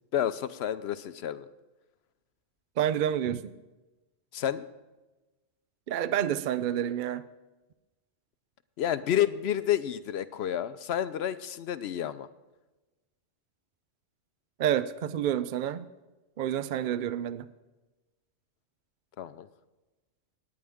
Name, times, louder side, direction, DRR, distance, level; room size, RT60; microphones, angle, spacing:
voice 1, 0.1-1.5 4.3-4.7 8.8-12.3 19.2-19.5, left 10 dB, 65° left, 14 dB, 0.8 m, -30 dB
voice 2, 2.8-3.4 5.9-7.2 14.6-15.9 16.4-17.4, right 10 dB, 60° right, 14 dB, 0.5 m, -28 dB
18.0 x 9.8 x 3.5 m, 1.1 s
omnidirectional pair, 1.2 m